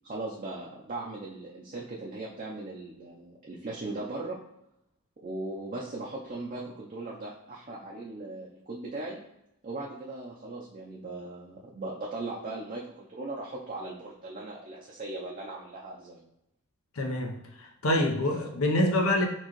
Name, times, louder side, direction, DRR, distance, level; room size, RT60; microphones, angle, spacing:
voice 1, 0.0-4.4 5.2-9.2 9.6-16.2, right 2 dB, 40° right, -3 dB, 0.5 m, -38 dB
voice 2, 16.9-19.3, left 1 dB, 75° left, 3 dB, 0.7 m, -26 dB
4.4 x 3.0 x 3.0 m, 0.84 s
head